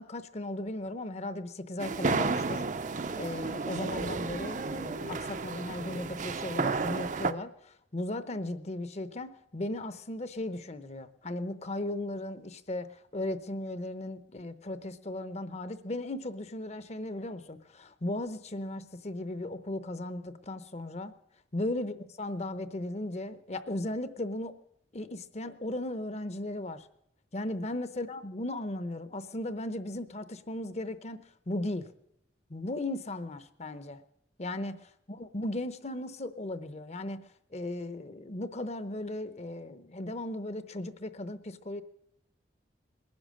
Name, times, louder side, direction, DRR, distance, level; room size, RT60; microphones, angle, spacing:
voice 1, 0.0-21.1 21.5-24.5 24.9-26.9 27.3-31.2 31.5-31.9 32.5-34.0 34.4-34.8 35.1-41.8, left 1 dB, 35° left, 13 dB, 0.8 m, -36 dB
sound 1, 1.8-7.3, right 4 dB, 45° right, 0.6 m, -32 dB
20.0 x 10.5 x 6.4 m, 0.77 s
head